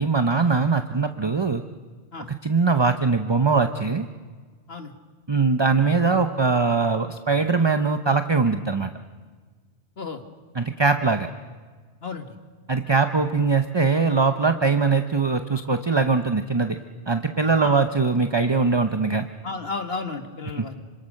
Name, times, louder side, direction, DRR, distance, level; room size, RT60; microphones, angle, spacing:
voice 1, 0.0-1.6 2.2-4.1 5.3-8.9 10.5-11.3 12.7-16.8 17.1-19.3 20.6-20.7, right 4 dB, 25° right, 8 dB, 0.8 m, -21 dB
voice 2, 12.0-12.3 17.6-17.8 19.4-20.8, left 4 dB, 60° left, 6 dB, 2.1 m, -33 dB
26.5 x 26.0 x 6.6 m, 1.5 s
omnidirectional pair, 1.2 m